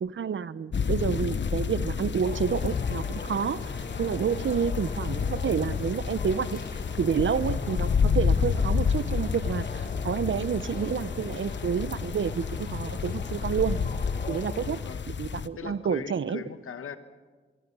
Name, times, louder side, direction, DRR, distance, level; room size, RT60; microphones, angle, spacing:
voice 1, 0.0-3.7 4.0-6.6 7.0-13.8 14.3-16.4, right 7 dB, 65° right, 16 dB, 0.8 m, -29 dB
sound 1, 0.7-15.5, left 6 dB, 60° left, 1.0 m, -30 dB
sound 2, 2.2-14.8, left 4 dB, 45° left, 1.5 m, -42 dB
sound 3, 2.6-14.9, left 1 dB, 5° left, 2.4 m, -46 dB
voice 2, 15.5-17.0, left 6 dB, 85° left, 9 dB, 1.5 m, -39 dB
25.0 x 23.0 x 5.5 m, 1.5 s
cardioid pair, 65°, 21 cm